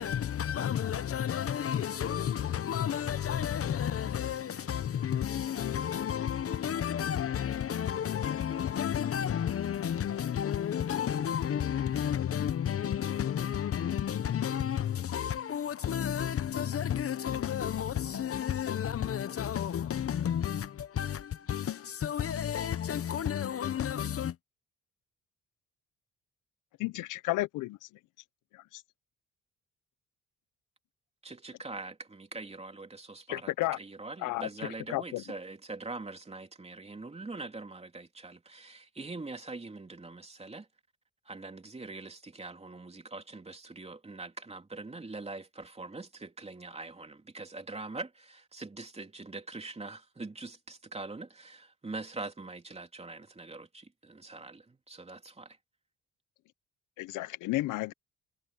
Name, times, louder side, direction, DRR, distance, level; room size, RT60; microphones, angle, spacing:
voice 1, 0.0-24.4, left 9 dB, 50° left, 0.9 m, -31 dB
voice 2, 26.8-27.8 28.5-28.8 33.3-33.8 34.2-35.2 57.0-57.9, left 18 dB, 85° left, 0.6 m, -33 dB
voice 3, 31.2-33.5 33.8-40.7 41.3-55.6, right 3 dB, 20° right, 3.2 m, -43 dB
cardioid pair, 90°, 30 cm